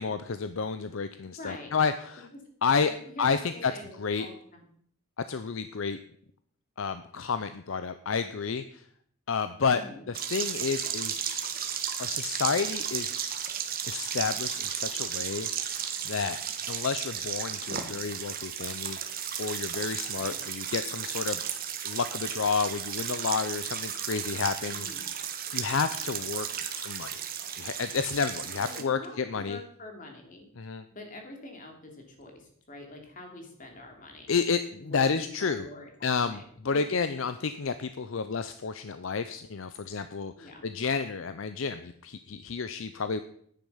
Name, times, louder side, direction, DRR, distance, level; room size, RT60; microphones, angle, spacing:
voice 1, 0.0-2.3 2.6-2.9 3.2-3.7 4.0-4.3 5.3-6.0 6.8-8.8 9.3-9.8 10.1-11.2 12.0-13.1 13.9-15.5 16.0-16.4 16.7-19.0 19.4-21.4 21.8-24.9 25.5-27.1 27.6-29.6 30.6-30.8 34.3-35.7 36.0-43.2, left 5 dB, 65° left, 11 dB, 0.6 m, -30 dB
voice 2, 1.3-1.8 2.7-3.3 3.7-4.6 9.7-10.0 20.1-20.4 24.7-25.1 28.6-30.5 30.9-34.3 34.8-36.4 40.4-40.7, left 2 dB, 40° left, 2 dB, 2.8 m, -45 dB
sound 1, 10.1-28.8, right 8 dB, 40° right, 1.3 m, -34 dB
10.5 x 9.4 x 5.6 m, 0.64 s
head